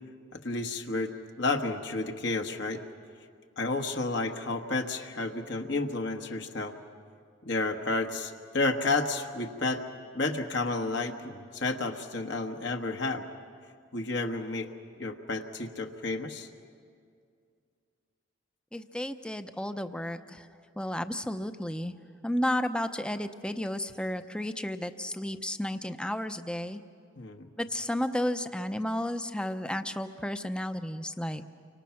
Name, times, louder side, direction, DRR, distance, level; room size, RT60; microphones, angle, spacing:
voice 1, 0.3-2.8 3.6-6.7 7.4-9.8 10.1-13.2 13.9-14.7 15.0-16.5 27.2-27.5, left 3 dB, 60° left, 3 dB, 1.3 m, -31 dB
voice 2, 18.7-20.4 20.8-21.9 22.2-26.8 27.6-31.4, left 1 dB, 5° left, 9 dB, 0.6 m, -32 dB
30.0 x 25.0 x 5.8 m, 2.3 s
head